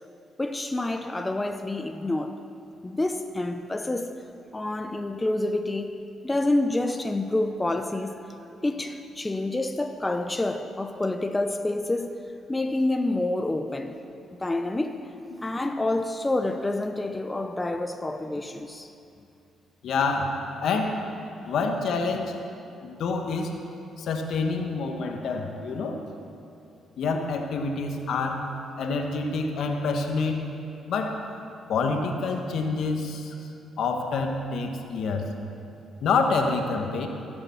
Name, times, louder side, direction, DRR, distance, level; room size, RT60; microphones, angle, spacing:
voice 1, 0.4-2.4 2.8-4.2 4.5-6.0 6.2-8.2 8.6-12.1 12.5-14.0 14.4-15.1 15.4-18.9 21.4-21.5, left 2 dB, 15° left, 0.6 m, -28 dB
voice 2, 19.8-21.0 21.4-22.4 22.8-23.6 24.0-26.0 27.0-28.5 28.7-30.4 30.8-31.2 31.7-33.3 33.8-35.3 36.0-37.1, left 4 dB, 70° left, 1.3 m, -27 dB
15.5 x 7.0 x 7.1 m
cardioid pair, 90°, 0 cm